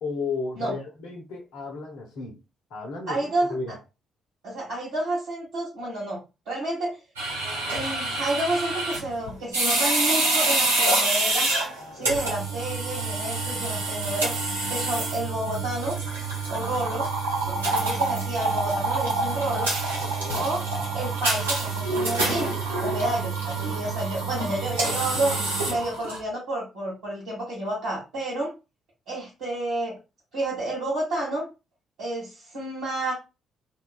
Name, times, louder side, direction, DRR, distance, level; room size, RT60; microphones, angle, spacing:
voice 1, 0.0-2.4 2.7-3.8 12.0-12.1 17.7-17.8 20.0-20.5, left 4 dB, 70° left, 0.7 m, -34 dB
voice 2, 3.1-3.5 4.4-6.2 6.4-7.0 7.7-11.5 11.9-14.3 14.7-16.0 16.5-17.1 17.5-19.7 20.3-20.6 20.9-22.5 22.8-28.5 29.1-30.0 30.3-31.4 32.0-33.1, right 1 dB, 70° right, 1.4 m, -30 dB
sound 1, 7.2-26.2, right 2 dB, 85° right, 0.6 m, -27 dB
2.9 x 2.3 x 2.2 m
figure-of-eight pair, 45°, 0 cm